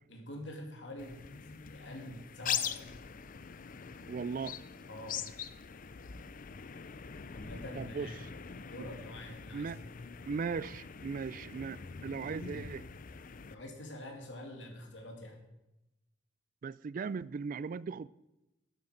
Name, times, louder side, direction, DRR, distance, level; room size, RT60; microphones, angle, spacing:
voice 1, 0.1-1.2 1.5-2.9 4.9-5.2 7.3-9.8 13.5-15.4, left 1 dB, 75° left, 2.7 m, -46 dB
sound 1, 1.0-13.5, left 7 dB, 50° left, 0.6 m, -43 dB
voice 2, 4.1-4.6 7.8-8.1 8.8-8.9 9.5-9.8 10.3-12.8 16.6-18.1, right 5 dB, 45° right, 0.3 m, -38 dB
12.0 x 10.5 x 5.1 m
head